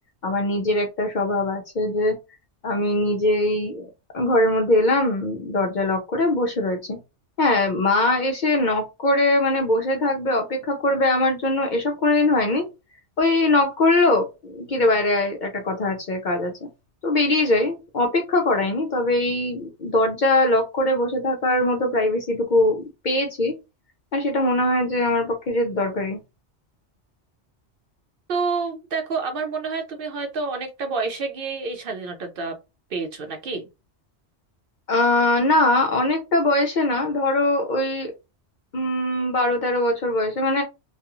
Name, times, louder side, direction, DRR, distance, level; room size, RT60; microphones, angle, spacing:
voice 1, 0.2-2.1 2.6-7.0 7.4-12.6 13.2-16.5 17.0-23.5 24.1-26.2 34.9-38.1 38.7-40.6, left 2 dB, 55° left, 3 dB, 0.5 m, -21 dB
voice 2, 28.3-32.6 32.9-33.7, right 4 dB, 60° right, 5 dB, 0.6 m, -28 dB
2.3 x 2.3 x 2.9 m, 0.26 s
omnidirectional pair, 1.2 m